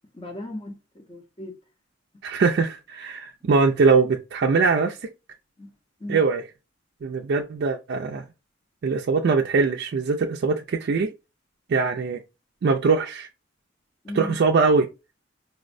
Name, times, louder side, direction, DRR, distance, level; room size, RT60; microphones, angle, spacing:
voice 1, 0.1-1.6 5.6-5.7 6.0-6.2 14.0-14.4, left 1 dB, 25° left, 0.6 m, -36 dB
voice 2, 2.2-5.0 6.1-6.4 7.0-8.2 8.8-11.1 11.7-12.2 12.6-13.3 14.1-14.9, right 4 dB, 55° right, 0.3 m, -22 dB
4.2 x 2.0 x 2.5 m
head